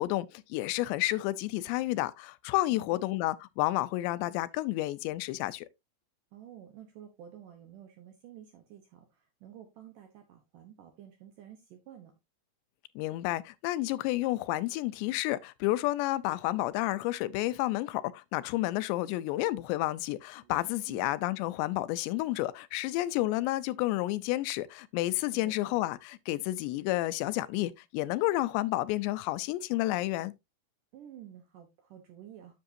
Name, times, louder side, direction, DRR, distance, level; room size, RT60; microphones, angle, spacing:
voice 1, 0.0-5.7 13.0-30.3, left 17 dB, 85° left, 2.8 m, -30 dB
voice 2, 2.7-3.0 6.3-12.2 20.4-20.5 20.9-21.1 25.3-25.8 30.9-32.6, right 10 dB, 75° right, 2.0 m, -51 dB
10.5 x 6.5 x 2.7 m
omnidirectional pair, 5.0 m